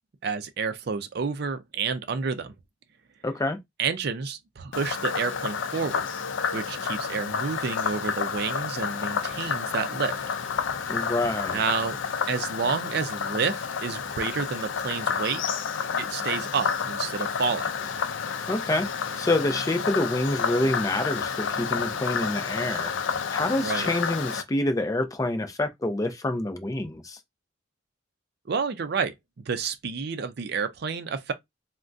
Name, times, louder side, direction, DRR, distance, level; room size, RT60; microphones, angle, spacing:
voice 1, 0.2-2.5 3.8-6.1 6.5-10.2 11.5-12.0 12.3-15.4 16.0-17.7 23.6-23.9 28.5-31.3, right 5 dB, 55° right, 0.4 m, -29 dB
voice 2, 3.2-3.6 10.9-11.6 18.5-18.9 19.2-22.9 23.3-27.2, left 1 dB, 20° left, 0.4 m, -27 dB
Frog, 4.7-24.4, left 6 dB, 75° left, 0.4 m, -30 dB
3.5 x 2.1 x 2.5 m
head